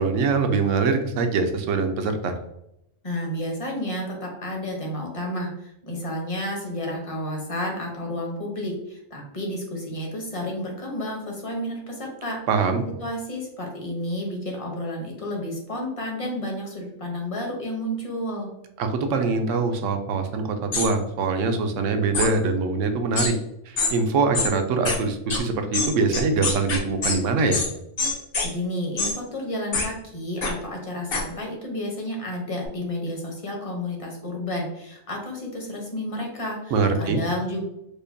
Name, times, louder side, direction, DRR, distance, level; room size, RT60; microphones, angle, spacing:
voice 1, 0.0-2.3 12.5-12.9 18.8-23.3 23.7-27.6 36.7-37.2, right 4 dB, 75° right, 6 dB, 0.9 m, -23 dB
voice 2, 3.0-12.4 13.0-18.5 28.4-37.7, left 1 dB, 30° left, 0 dB, 0.7 m, -31 dB
sound 1, 20.7-20.9 22.1-22.3 23.2-23.3 23.8-23.9 24.3-24.5 24.9-25.0 25.3-25.4 25.7-27.2 27.5-27.7 28.0-28.5 29.0-29.1 29.7-29.9 30.4-30.5 31.1-31.2, left 3 dB, 55° left, 0.9 m, -24 dB
5.0 x 2.2 x 2.5 m, 0.81 s
omnidirectional pair, 1.3 m